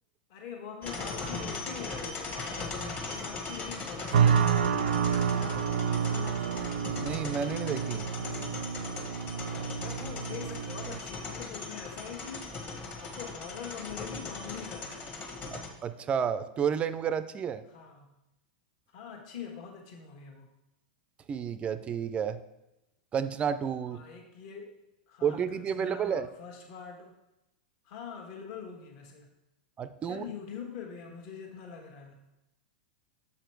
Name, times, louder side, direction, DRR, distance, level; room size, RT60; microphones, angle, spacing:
voice 1, 0.3-6.8 9.4-15.2 17.7-18.1 18.9-20.5 23.9-24.7 25.1-27.1 27.8-29.3 30.0-32.2, left 6 dB, 50° left, 2 dB, 1.3 m, -44 dB
sound 1, 0.8-15.7, left 3 dB, 30° left, 1.2 m, -39 dB
sound 2, 4.1-11.0, right 7 dB, 85° right, 0.5 m, -29 dB
voice 2, 6.9-8.1 15.5-17.6 21.3-22.4 23.1-24.0 25.2-26.3 29.8-30.2, right 7 dB, 20° right, 13 dB, 0.3 m, -31 dB
6.9 x 5.0 x 4.5 m, 0.92 s
supercardioid pair, 135°, 5 cm